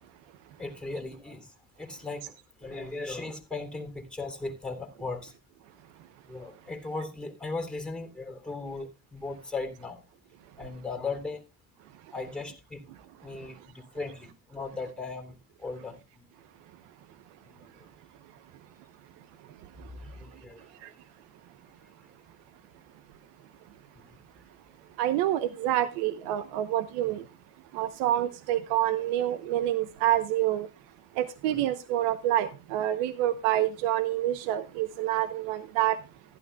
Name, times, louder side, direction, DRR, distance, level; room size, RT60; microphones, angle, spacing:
voice 1, 0.6-1.5 1.8-2.2 2.6-5.3 6.3-10.0 10.6-11.4 12.1-12.8 13.2-15.4 15.6-16.2 17.5-17.6 20.2-20.6 23.9-24.1 31.5-31.6, left 3 dB, ahead, 3.1 m, -37 dB
voice 2, 25.0-27.2 27.7-30.7 31.2-36.0, right 12 dB, 85° right, 0.9 m, -27 dB
15.0 x 12.0 x 2.2 m
supercardioid pair, 100°, 40 cm